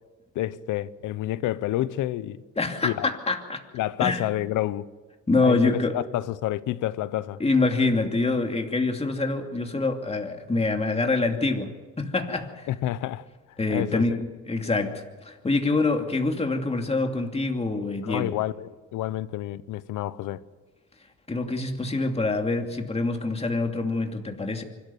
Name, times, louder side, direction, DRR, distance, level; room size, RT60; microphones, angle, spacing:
voice 1, 0.3-2.4 2.8-3.1 3.7-4.8 5.4-7.4 12.7-13.2 13.7-14.0 18.0-20.4, left 14 dB, 90° left, 0.9 m, -29 dB
voice 2, 2.6-3.6 4.0-4.3 5.3-6.0 7.4-12.7 13.6-18.4 21.3-24.6, left 3 dB, 20° left, 2.7 m, -25 dB
25.0 x 13.0 x 9.3 m
cardioid pair, 90°, 30 cm